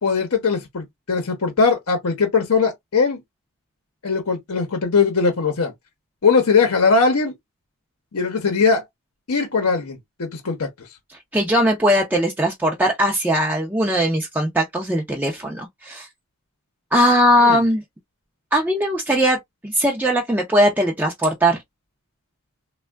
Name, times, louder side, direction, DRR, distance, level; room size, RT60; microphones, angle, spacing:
voice 1, 0.0-3.2 4.0-5.7 6.2-7.3 8.1-8.8 9.3-10.7 17.4-17.6, left 4 dB, 75° left, 0.8 m, -20 dB
voice 2, 11.3-16.1 16.9-17.8 18.5-19.4 19.6-21.6, equal, 10° right, 0.5 m, -19 dB
3.4 x 2.2 x 2.2 m
head